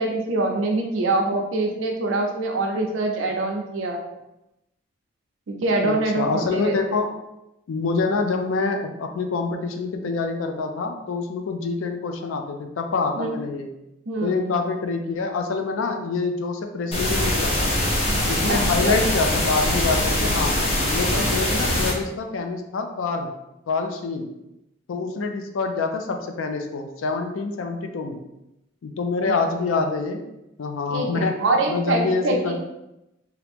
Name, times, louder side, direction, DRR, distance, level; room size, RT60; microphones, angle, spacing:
voice 1, 0.0-4.1 5.5-6.7 13.2-13.3 14.1-14.5 18.5-19.0 21.1-21.3 29.2-29.3 30.9-32.6, right 2 dB, 70° right, 1 dB, 0.4 m, -24 dB
voice 2, 5.8-7.1 7.7-13.7 14.2-17.7 18.3-20.6 20.9-23.3 23.7-24.3 24.9-28.2 28.8-30.2 30.6-31.4 31.7-32.6, left 4 dB, 75° left, 5 dB, 0.4 m, -26 dB
sound 1, 16.9-21.9, left 1 dB, 30° left, 0.6 m, -22 dB
2.9 x 2.4 x 3.4 m, 0.91 s
head